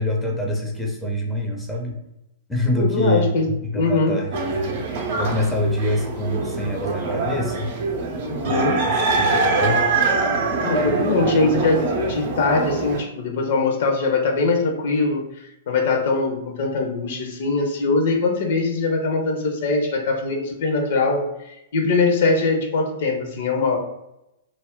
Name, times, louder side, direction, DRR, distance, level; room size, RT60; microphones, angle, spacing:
voice 1, 0.0-2.0 2.5-4.8 5.1-7.7 8.4-9.8, left 1 dB, 5° left, 0 dB, 0.5 m, -25 dB
voice 2, 2.7-3.5 3.7-4.2 8.2-8.8 10.6-11.8 12.1-15.3 15.7-23.8, left 3 dB, 60° left, 3 dB, 0.5 m, -22 dB
sound 1, 4.3-13.0, right 3 dB, 50° right, 0.5 m, -23 dB
2.3 x 2.0 x 3.5 m, 0.87 s
figure-of-eight pair, 105°, 0 cm